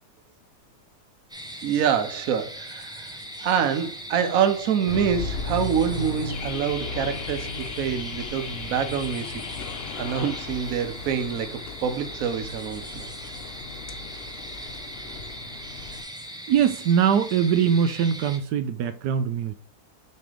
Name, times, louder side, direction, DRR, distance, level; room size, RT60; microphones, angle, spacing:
sound 1, 1.3-18.4, equal, 5° right, 0.6 m, -40 dB
voice 1, 1.6-9.4 9.9-13.1, right 8 dB, 65° right, 1.2 m, -26 dB
Car / Alarm, 4.9-16.0, left 4 dB, 60° left, 0.6 m, -36 dB
voice 2, 16.5-19.6, right 8 dB, 85° right, 1.1 m, -22 dB
6.7 x 3.3 x 4.9 m
omnidirectional pair, 1.7 m